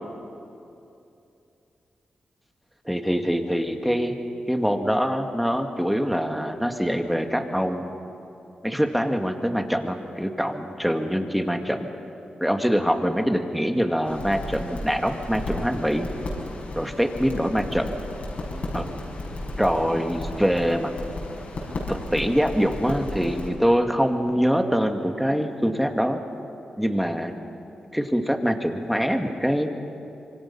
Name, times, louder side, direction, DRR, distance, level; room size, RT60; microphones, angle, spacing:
voice 1, 2.9-4.1 4.5-7.9 8.6-11.9 12.4-16.1 16.7-18.0 18.7-18.9 19.6-20.9 21.9-26.2 26.8-27.3 27.9-29.7, equal, ahead, 5 dB, 1.9 m, -24 dB
sound 1, 14.0-23.5, left 2 dB, 65° left, 6.3 m, -34 dB
26.5 x 24.0 x 5.6 m, 2.7 s
cardioid pair, 65°, 3 cm